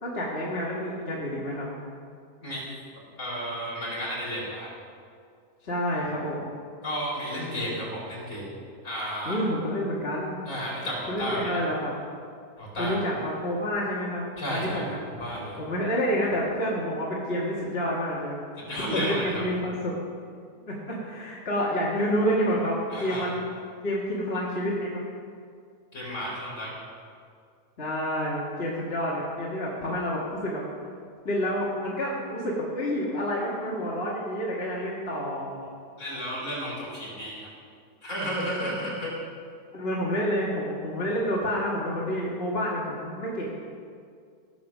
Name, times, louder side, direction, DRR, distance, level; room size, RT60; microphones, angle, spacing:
voice 1, 0.0-1.7 5.6-6.5 9.3-10.4 11.1-11.9 12.8-15.0 15.6-18.4 18.8-19.9 20.7-23.5 23.8-25.0 27.8-30.6 31.3-35.7 38.6-38.9 39.7-43.7, equal, 35° left, -5 dB, 1.9 m, -29 dB
voice 2, 3.2-4.7 6.8-8.6 8.8-9.4 10.5-11.6 12.6-13.0 14.4-15.6 18.6-19.4 22.9-23.3 25.9-26.7 36.0-37.5 38.0-39.1, equal, 50° left, -6 dB, 4.8 m, -32 dB
17.0 x 7.3 x 6.1 m, 2.2 s
omnidirectional pair, 1.8 m